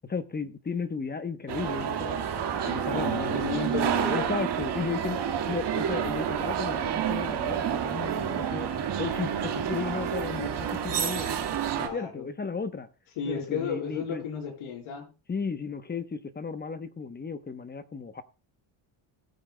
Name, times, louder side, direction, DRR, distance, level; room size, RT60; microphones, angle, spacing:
voice 1, 0.0-2.2 2.6-3.4 4.1-8.7 9.0-11.3 11.9-12.9 13.3-14.2 15.3-18.2, left 5 dB, 20° left, 0.9 m, -34 dB
sound 1, 1.5-11.9, right 8 dB, 55° right, 1.8 m, -29 dB
voice 2, 2.9-4.3 11.8-12.3 13.2-15.1, left 6 dB, 80° left, 4.5 m, -33 dB
19.0 x 8.9 x 2.2 m
cardioid pair, 115°, 49 cm